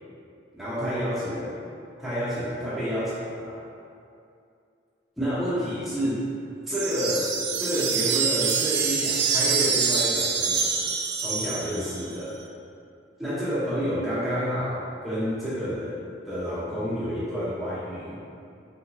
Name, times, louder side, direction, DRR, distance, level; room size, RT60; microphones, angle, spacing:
voice 1, 0.5-1.5 2.0-3.6 5.2-6.2 6.7-7.3 7.6-10.8 11.2-12.3 13.2-18.2, equal, ahead, -11 dB, 0.8 m, -29 dB
sound 1, 6.7-12.1, right 5 dB, 60° right, 0.3 m, -25 dB
3.5 x 2.9 x 2.7 m, 2.5 s
head